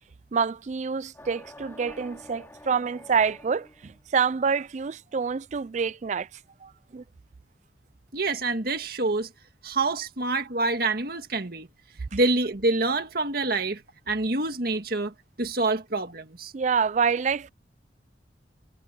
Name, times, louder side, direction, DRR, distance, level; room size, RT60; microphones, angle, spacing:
voice 1, 0.3-6.3 6.6-7.0 16.5-17.5, right 6 dB, 40° right, 0.4 m, -27 dB
sound 1, 1.1-4.0, left 1 dB, 15° left, 2.9 m, -48 dB
voice 2, 8.1-9.3 9.6-11.7 12.1-13.8 14.1-16.5, right 2 dB, 55° right, 1.9 m, -26 dB
head